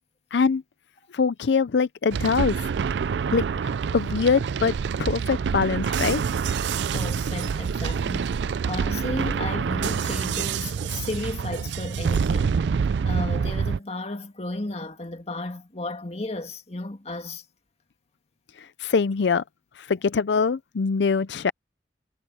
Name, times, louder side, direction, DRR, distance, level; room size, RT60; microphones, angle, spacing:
voice 1, 0.3-0.6 1.1-2.6 3.3-4.7 5.0-6.2 18.6-19.4 19.8-21.5, left 5 dB, 85° left, 0.5 m, -23 dB
sound 1, 2.1-13.8, right 6 dB, 80° right, 0.4 m, -26 dB
voice 2, 6.9-8.4 8.7-12.6 13.1-17.4, left 2 dB, 35° left, 1.9 m, -34 dB
head